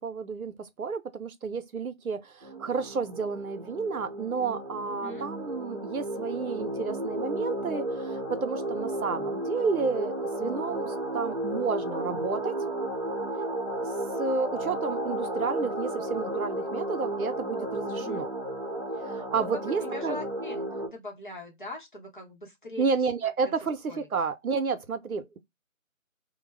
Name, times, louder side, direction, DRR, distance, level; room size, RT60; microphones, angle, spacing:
voice 1, 0.0-12.5 14.2-18.3 19.0-20.2 22.8-25.4, right 5 dB, 85° right, 0.7 m, -31 dB
sound 1, 2.4-20.9, right 1 dB, 35° right, 0.7 m, -33 dB
voice 2, 19.4-22.9 23.4-23.5 23.9-24.1, left 2 dB, 35° left, 0.7 m, -41 dB
2.3 x 2.0 x 3.2 m
figure-of-eight pair, 165°, 42 cm